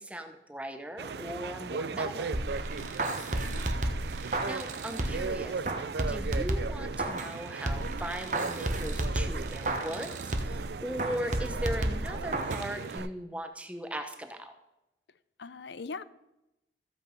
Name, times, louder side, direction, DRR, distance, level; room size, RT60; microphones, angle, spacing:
voice 1, 0.0-2.4 4.2-14.5, equal, 5° right, 6 dB, 1.0 m, -39 dB
sound 1, 1.0-13.1, right 5 dB, 65° right, 0.4 m, -37 dB
sound 2, 2.3-5.3 5.6-7.4 7.7-10.6 11.0-12.7 13.0-13.1, right 1 dB, 45° right, 1.2 m, -32 dB
voice 2, 2.8-3.7 15.4-16.0, left 4 dB, 75° left, 16 dB, 0.6 m, -42 dB
14.5 x 8.2 x 5.3 m, 0.92 s
head